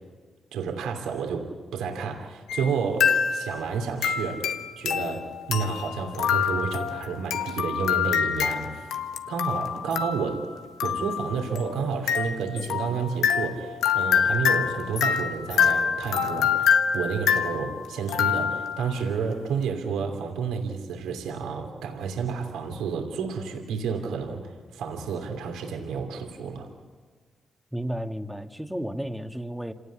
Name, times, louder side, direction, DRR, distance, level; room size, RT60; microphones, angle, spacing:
voice 1, 0.5-4.5 4.8-8.9 9.3-10.5 10.8-26.7, right 5 dB, 90° right, 2 dB, 2.9 m, -30 dB
sound 1, 2.5-2.7 3.0-3.6 4.0-18.9, left 8 dB, 85° left, 1.1 m, -26 dB
voice 2, 27.7-29.7, equal, 5° right, 6 dB, 1.7 m, -32 dB
27.0 x 18.0 x 8.6 m, 1.5 s
supercardioid pair, 55°, 0 cm